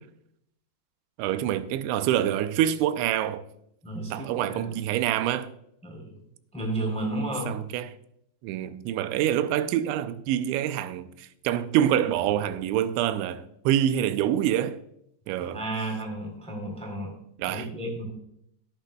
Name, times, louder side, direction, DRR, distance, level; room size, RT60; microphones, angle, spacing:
voice 1, 1.2-3.5 4.1-5.5 7.5-8.0 8.4-14.8 15.3-15.6 17.4-17.7, right 11 dB, 90° right, 2.9 m, -26 dB
voice 2, 3.8-4.8 5.8-6.1 6.5-7.5 15.5-17.1 17.5-18.1, right 2 dB, ahead, 2.5 m, -32 dB
16.5 x 10.5 x 2.3 m
omnidirectional pair, 5.1 m